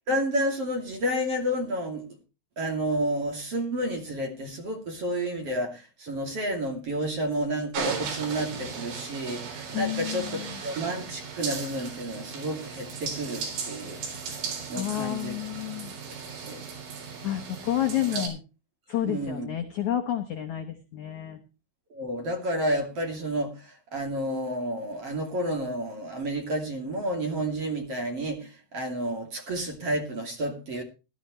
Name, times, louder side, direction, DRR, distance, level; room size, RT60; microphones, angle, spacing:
voice 1, 0.1-2.0 2.6-10.3 10.6-14.0 14.7-15.3 16.3-16.6 18.1-18.3 19.1-19.5 21.9-30.8, right 1 dB, 40° right, 3.0 m, -30 dB
sound 1, 7.7-18.3, right 6 dB, 80° right, 6.2 m, -36 dB
voice 2, 9.7-10.5 14.7-15.9 17.2-18.4 18.9-21.4, left 12 dB, 80° left, 1.7 m, -30 dB
17.0 x 12.5 x 3.1 m
omnidirectional pair, 5.2 m